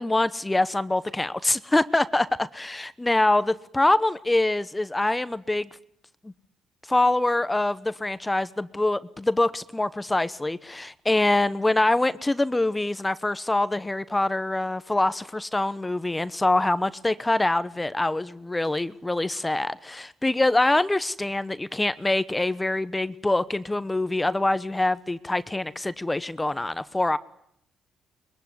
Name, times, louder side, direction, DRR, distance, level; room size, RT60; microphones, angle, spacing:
voice 1, 0.0-5.7 6.2-6.3 6.9-27.2, left 2 dB, 15° left, 1.0 m, -24 dB
22.5 x 22.0 x 9.6 m
cardioid pair, 90°, 0 cm